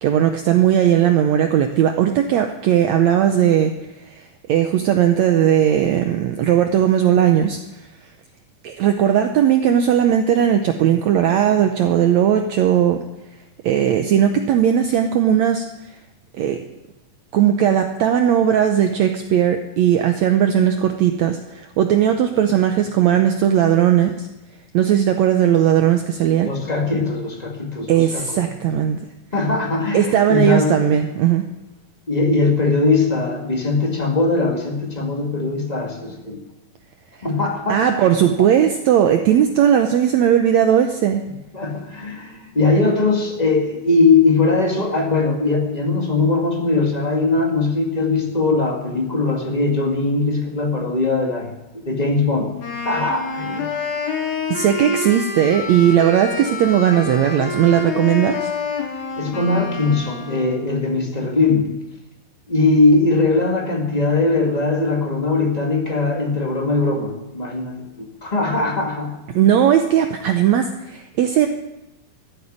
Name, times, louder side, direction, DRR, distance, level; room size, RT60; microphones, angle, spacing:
voice 1, 0.0-3.7 4.1-7.6 8.6-13.0 13.6-15.6 16.4-16.6 17.3-24.3 24.7-26.5 27.9-29.0 29.9-31.4 37.7-41.2 54.5-58.5 69.3-71.5, right 10 dB, 80° right, 6 dB, 1.5 m, -17 dB
voice 2, 26.4-28.3 29.3-30.9 32.1-36.4 37.2-38.0 38.4-38.5 41.5-52.5 52.8-53.7 59.2-61.7 62.5-69.1, left 3 dB, 25° left, 1 dB, 0.8 m, -20 dB
Wind instrument woodwind instrument, 52.6-60.7, left 4 dB, 75° left, 3.9 m, -28 dB
14.0 x 8.1 x 9.9 m, 0.97 s
omnidirectional pair, 4.2 m